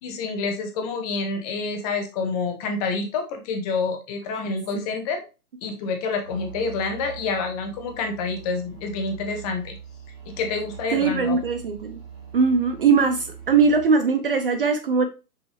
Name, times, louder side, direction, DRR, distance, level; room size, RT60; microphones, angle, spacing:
voice 1, 0.0-5.2 5.6-9.8 10.2-11.4, left 4 dB, 25° left, 4 dB, 1.3 m, -28 dB
sound 1, 6.2-13.8, right 7 dB, 15° right, 2.3 m, -42 dB
voice 2, 10.9-12.0 12.3-15.1, right 5 dB, 40° right, 8 dB, 0.5 m, -20 dB
5.5 x 5.3 x 3.2 m, 0.30 s
figure-of-eight pair, 130°, 46 cm